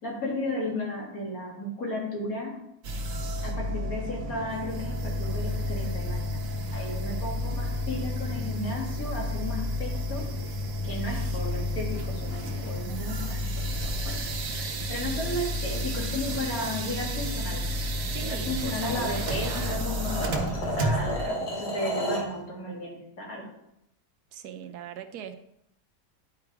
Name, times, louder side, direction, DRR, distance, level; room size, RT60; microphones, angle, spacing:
voice 1, 0.0-2.6 3.4-6.4 6.7-10.2 10.8-13.5 13.8-14.2 14.5-14.6 14.9-17.7 18.2-20.3 20.6-21.1 21.5-23.5, left 1 dB, 60° left, -2 dB, 2.6 m, -34 dB
sound 1, 2.8-21.3, left 1 dB, 60° right, 1.3 m, -31 dB
sound 2, 18.0-22.3, left 1 dB, 85° left, 2.6 m, -33 dB
voice 2, 18.1-19.9 20.7-21.5 21.8-22.1 24.3-25.3, right 8 dB, 85° right, 9 dB, 1.3 m, -41 dB
10.5 x 4.8 x 4.8 m, 0.81 s
omnidirectional pair, 1.7 m